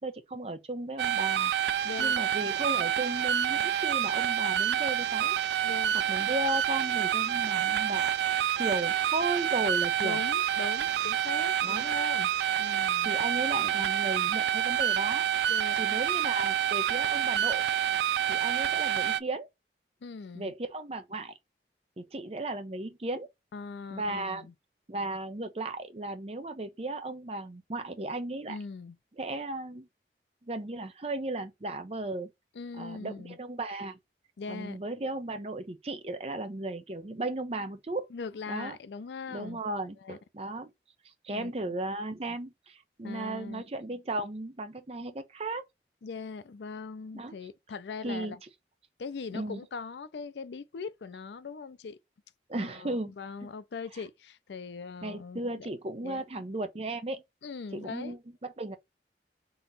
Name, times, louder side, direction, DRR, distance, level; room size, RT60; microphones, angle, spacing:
voice 1, 0.0-1.5 2.0-5.4 5.9-8.1 8.6-10.2 11.6-11.9 13.0-15.2 15.8-17.7 18.3-19.5 20.3-21.3 22.0-23.3 23.9-24.4 24.9-28.6 29.2-29.9 30.4-32.3 32.8-34.0 34.5-38.1 38.5-38.8 39.3-40.7 41.0-45.6 47.1-47.3 48.0-48.4 49.3-49.6 52.5-53.1 55.0-57.2 57.7-58.8, right 2 dB, 35° right, 0.6 m, -35 dB
sound 1, 1.0-19.2, right 10 dB, 75° right, 0.3 m, -28 dB
voice 2, 1.8-2.3 5.6-6.0 10.0-12.3 12.6-13.1 15.5-16.0 20.0-20.5 23.5-24.5 28.5-29.0 32.5-33.4 34.4-34.8 38.1-39.6 40.0-40.2 41.3-41.7 43.0-43.6 46.0-48.4 49.0-52.0 52.6-55.7 56.0-56.2 57.4-58.2, left 5 dB, 80° left, 0.4 m, -41 dB
3.9 x 2.9 x 3.9 m
head